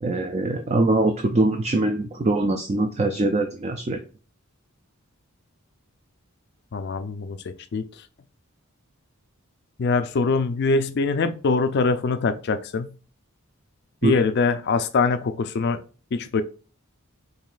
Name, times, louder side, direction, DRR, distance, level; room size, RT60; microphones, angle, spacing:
voice 1, 0.0-4.0 14.0-14.2, right 2 dB, 30° right, 0.3 m, -23 dB
voice 2, 6.7-7.8 9.8-12.9 14.0-15.8 16.1-16.4, left 4 dB, 45° left, 0.4 m, -23 dB
4.7 x 3.0 x 2.4 m
head